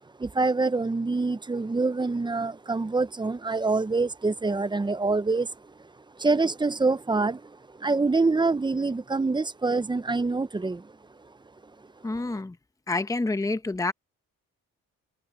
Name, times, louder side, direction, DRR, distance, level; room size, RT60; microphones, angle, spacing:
voice 1, 0.2-10.9 11.2-11.3, right 3 dB, 15° right, 0.7 m, -26 dB
voice 2, 12.0-12.6 12.9-13.9, left 3 dB, 10° left, 1.0 m, -28 dB
cardioid pair, 90°, 30 cm